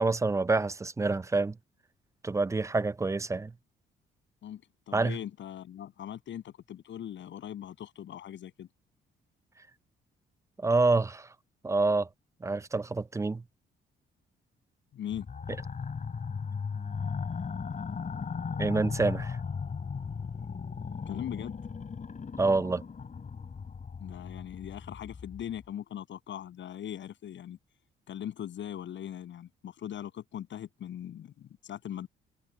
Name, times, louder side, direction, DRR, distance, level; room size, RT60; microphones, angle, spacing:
voice 1, 0.0-1.6 2.2-3.5 4.9-5.2 10.6-11.3 11.6-12.1 12.4-13.4 18.6-19.4 22.4-22.8, right 3 dB, 15° right, 0.4 m, -27 dB
voice 2, 4.4-8.7 14.9-15.3 21.1-21.6 24.0-27.6 28.1-32.1, left 10 dB, 70° left, 7.3 m, -40 dB
sound 1, 15.1-25.6, left 5 dB, 40° left, 4.3 m, -37 dB
cardioid pair, 90°, 20 cm